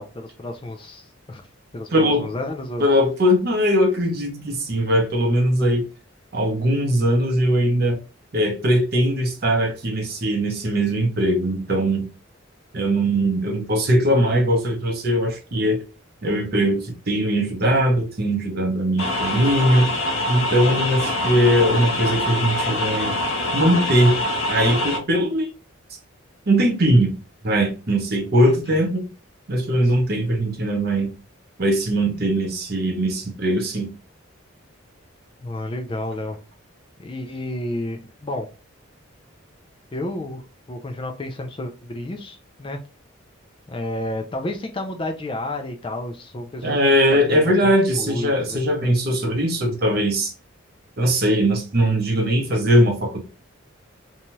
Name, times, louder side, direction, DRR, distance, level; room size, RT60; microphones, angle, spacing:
voice 1, 0.0-1.4 1.7-2.8 28.2-28.8 35.4-36.4 37.0-38.5 39.9-42.8 43.7-46.8 47.1-48.6, left 1 dB, 25° left, 3 dB, 0.3 m, -31 dB
voice 2, 1.9-2.3 2.8-5.8 6.3-8.0 8.3-12.1 12.7-15.8 16.2-19.9 20.3-23.1 23.5-24.1 24.5-25.5 26.5-27.2 27.4-29.0 29.5-31.1 31.6-33.9 46.6-50.3 51.0-53.2, equal, 45° right, 3 dB, 0.7 m, -20 dB
sound 1, 19.0-25.0, left 1 dB, 75° left, 0.7 m, -24 dB
2.7 x 2.3 x 2.9 m, 0.33 s
head